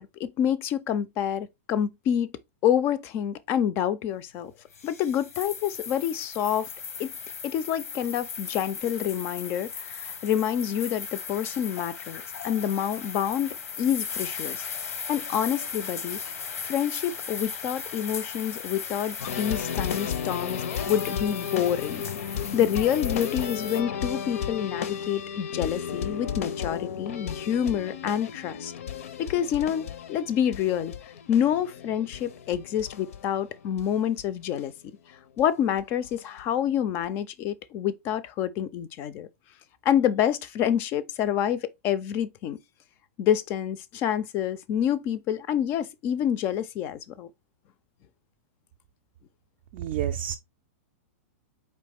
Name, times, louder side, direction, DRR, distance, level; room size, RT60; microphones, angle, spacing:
voice 1, 0.0-2.3 2.6-4.5 4.8-6.7 7.0-7.1 7.4-14.6 15.1-16.3 16.6-28.7 29.2-34.7 35.4-39.3 39.9-42.6 43.2-47.3, left 9 dB, 30° left, 0.4 m, -27 dB
sound 1, 4.7-23.8, left 6 dB, 90° left, 0.9 m, -37 dB
sound 2, 19.2-33.9 34.2-34.3 34.6-34.7 35.4-35.5 35.8-36.4 37.0-37.1, left 7 dB, 70° left, 0.6 m, -34 dB
voice 2, 49.7-50.4, right 10 dB, 40° right, 0.3 m, -29 dB
4.2 x 2.9 x 3.4 m
hypercardioid pair, 155°, 8 cm